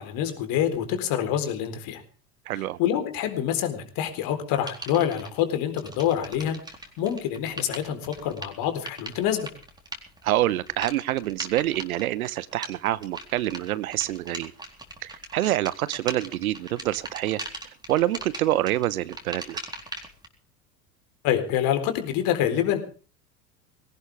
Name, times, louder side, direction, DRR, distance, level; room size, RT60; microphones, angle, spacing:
voice 1, 0.0-2.0 2.6-6.6 7.0-9.5 21.2-22.8, left 10 dB, 45° left, 8 dB, 4.1 m, -26 dB
voice 2, 2.5-2.8 10.2-14.5 15.0-17.4 17.9-19.6, right 14 dB, 65° right, 20 dB, 1.0 m, -26 dB
sound 1, 4.7-5.3 5.7-20.3, right 1 dB, 10° right, 3.9 m, -40 dB
21.0 x 17.5 x 3.5 m, 0.40 s
figure-of-eight pair, 80°, 46 cm